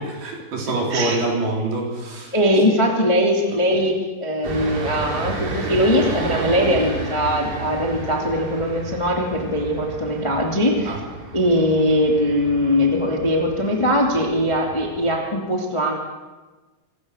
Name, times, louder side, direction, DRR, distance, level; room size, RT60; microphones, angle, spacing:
voice 1, 0.2-2.4 3.7-3.8 10.9-11.0, right 2 dB, 50° right, -1 dB, 5.4 m, -25 dB
voice 2, 2.3-3.9 4.2-11.0 11.3-15.9, equal, 25° left, 0 dB, 0.7 m, -20 dB
sound 1, 4.4-15.1, right 3 dB, 90° right, 6.4 m, -32 dB
24.0 x 17.5 x 6.6 m, 1.2 s
omnidirectional pair, 6.0 m